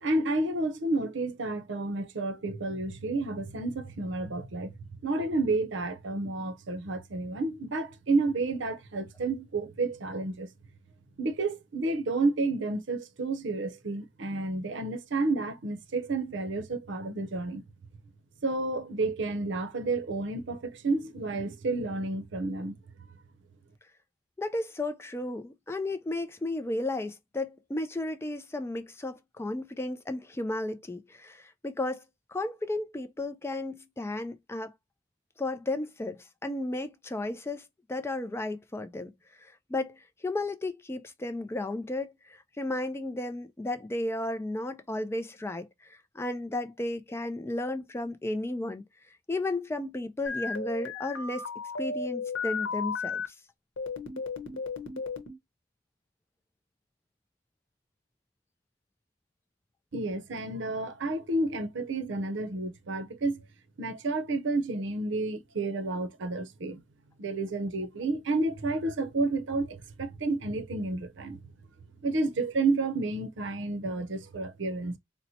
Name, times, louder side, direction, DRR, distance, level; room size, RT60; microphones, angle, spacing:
voice 1, 0.0-4.8 5.0-10.5 11.2-17.6 18.4-22.8 59.9-63.4 63.8-66.8 67.2-71.4 72.0-75.0, right 2 dB, 70° right, 0.6 m, -30 dB
voice 2, 24.4-32.0 32.3-34.7 35.4-39.1 39.4-48.8 49.3-51.5 51.8-53.2, left 2 dB, 15° left, 0.3 m, -34 dB
sound 1, 50.3-53.3 53.8-55.4, left 4 dB, 80° left, 0.8 m, -34 dB
4.2 x 2.1 x 2.7 m
head